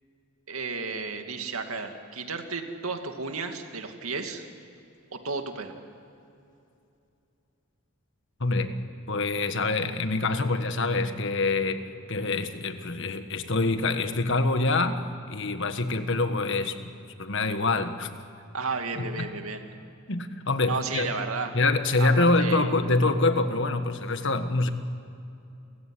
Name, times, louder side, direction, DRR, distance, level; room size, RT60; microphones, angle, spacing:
voice 1, 0.5-4.5 5.1-5.8 18.5-19.6 20.7-21.5 22.0-22.7, right 4 dB, 90° right, 5 dB, 2.3 m, -33 dB
voice 2, 8.4-8.7 9.1-11.8 12.1-15.0 15.3-16.7 17.2-18.1 19.0-19.3 20.1-21.1 21.5-24.7, left 3 dB, 60° left, 9 dB, 1.5 m, -25 dB
30.0 x 16.0 x 10.0 m, 2.7 s
head